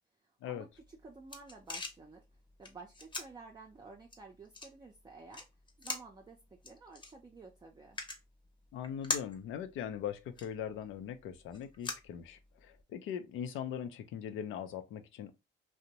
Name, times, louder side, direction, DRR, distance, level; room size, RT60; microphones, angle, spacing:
voice 1, 0.2-2.3 2.6-5.5 5.8-8.0, right 3 dB, 20° right, 0.5 m, -52 dB
sound 1, 0.7-12.8, left 3 dB, 25° left, 0.8 m, -45 dB
voice 2, 8.7-15.3, left 9 dB, 90° left, 0.5 m, -40 dB
2.6 x 2.0 x 2.9 m
cardioid pair, 90°, 20 cm